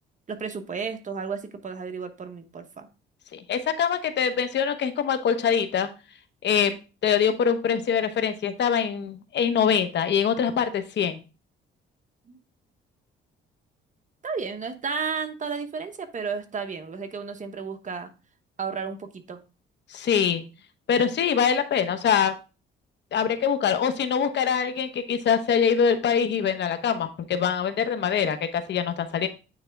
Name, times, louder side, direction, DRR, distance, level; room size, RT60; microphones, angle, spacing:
voice 1, 0.3-2.9 12.3-12.4 14.2-18.1 18.6-19.4, right 5 dB, 40° right, 7 dB, 1.1 m, -33 dB
voice 2, 3.3-5.9 6.4-6.7 7.0-11.2 19.9-20.4 20.9-22.4 23.1-29.3, left 7 dB, 60° left, 9 dB, 0.9 m, -24 dB
9.4 x 3.4 x 3.4 m, 0.32 s
cardioid pair, 90°, 20 cm